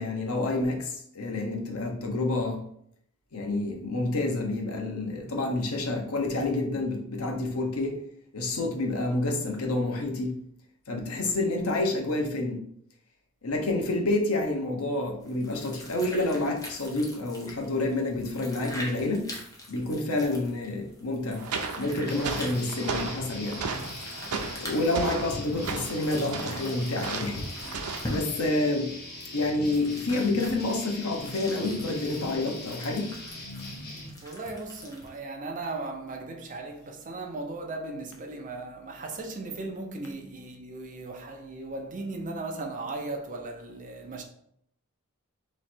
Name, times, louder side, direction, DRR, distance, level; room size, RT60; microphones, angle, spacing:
voice 1, 0.0-2.6 3.3-8.1 8.3-10.4 10.9-12.6 13.4-19.3 19.7-21.5 21.8-23.7 24.6-27.5 28.1-28.9 29.3-33.1, left 2 dB, 70° left, 0.8 m, -28 dB
sound 1, 15.2-35.2, left 1 dB, 15° left, 0.8 m, -43 dB
sound 2, 21.3-28.2, right 4 dB, 85° right, 0.5 m, -36 dB
sound 3, 22.1-34.1, left 1 dB, 50° left, 1.1 m, -41 dB
voice 2, 34.2-44.2, right 2 dB, 35° right, 0.6 m, -37 dB
3.1 x 3.1 x 4.3 m
head